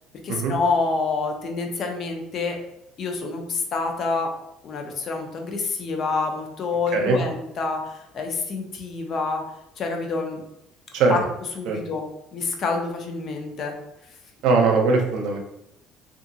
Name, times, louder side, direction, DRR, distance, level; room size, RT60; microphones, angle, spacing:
voice 1, 0.2-2.6 3.0-4.3 4.6-9.4 9.8-10.4 11.1-11.2 11.6-12.1 12.3-13.7, left 4 dB, 45° left, 3 dB, 0.5 m, -27 dB
voice 2, 14.4-15.4, right 4 dB, 70° right, 3 dB, 0.5 m, -20 dB
2.7 x 2.4 x 2.7 m, 0.81 s
cardioid pair, 140°, 0 cm